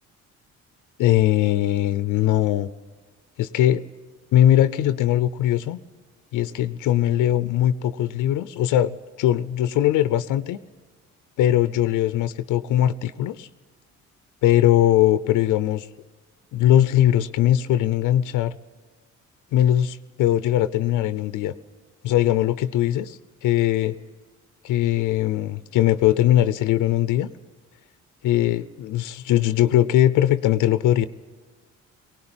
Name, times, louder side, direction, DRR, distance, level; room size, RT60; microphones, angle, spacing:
voice 1, 1.0-2.7 3.4-3.8 4.3-5.8 6.3-10.6 11.4-13.5 14.4-15.9 16.5-18.6 19.5-21.5 22.0-24.0 24.6-27.3 28.2-31.1, left 12 dB, 90° left, 14 dB, 0.7 m, -20 dB
19.5 x 18.5 x 8.9 m, 1.4 s
cardioid pair, 90°, 30 cm